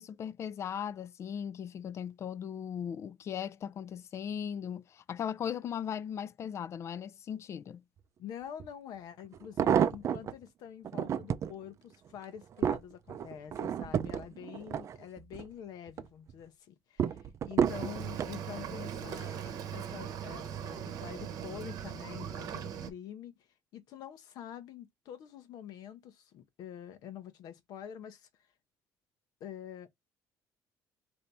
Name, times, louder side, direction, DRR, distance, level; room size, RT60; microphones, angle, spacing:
voice 1, 0.0-7.8, left 8 dB, 40° left, 0.3 m, -38 dB
voice 2, 8.2-23.5 23.7-28.3 29.4-29.9, left 9 dB, 70° left, 0.7 m, -46 dB
sound 1, 8.6-8.7 9.3-10.3 10.8-11.5 12.1-15.5 15.9-16.3 17.0-18.4 19.1-19.5 19.8-19.9, right 8 dB, 45° right, 0.4 m, -31 dB
Cricket / Waves surf, 17.6-22.9, right 8 dB, 65° right, 0.9 m, -40 dB
3.3 x 2.6 x 4.1 m
cardioid pair, 115°, 7 cm